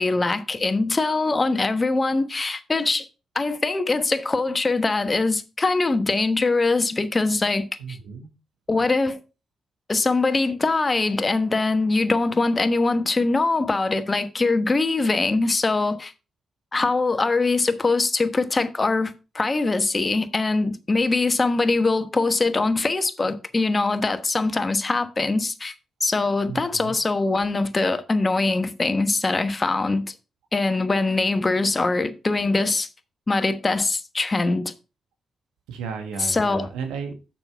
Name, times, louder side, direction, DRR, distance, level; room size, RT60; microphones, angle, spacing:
voice 1, 0.0-3.1 3.3-8.0 8.7-9.2 9.9-16.1 16.7-25.7 26.0-30.1 30.5-32.9 33.3-34.7 36.2-36.7, left 3 dB, 35° left, 1.1 m, -22 dB
voice 2, 7.8-8.3 26.5-27.0 35.7-37.1, right 5 dB, 85° right, 1.4 m, -33 dB
6.9 x 5.9 x 4.5 m
supercardioid pair, 45°, 0 cm